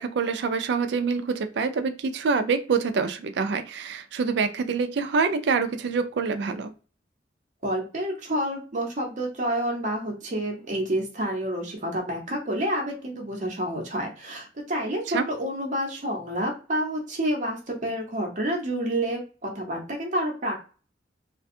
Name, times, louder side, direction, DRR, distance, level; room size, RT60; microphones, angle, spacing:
voice 1, 0.0-6.7 15.1-15.2, right 5 dB, 70° right, 9 dB, 0.4 m, -26 dB
voice 2, 7.6-20.5, right 1 dB, 45° right, 0 dB, 0.8 m, -29 dB
2.5 x 2.2 x 2.6 m, 0.36 s
head